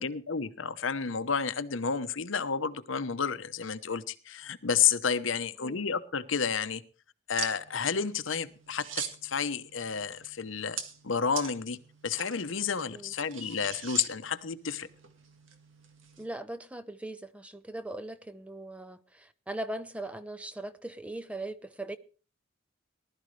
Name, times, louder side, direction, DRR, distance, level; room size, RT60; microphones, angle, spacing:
voice 1, 0.0-6.8 7.3-10.8 11.0-11.8 12.0-14.9, left 6 dB, 75° left, 0.9 m, -31 dB
sound 1, 7.3-16.3, right 6 dB, 75° right, 1.9 m, -43 dB
voice 2, 16.2-22.0, right 1 dB, 5° right, 0.6 m, -40 dB
19.5 x 12.5 x 3.3 m
head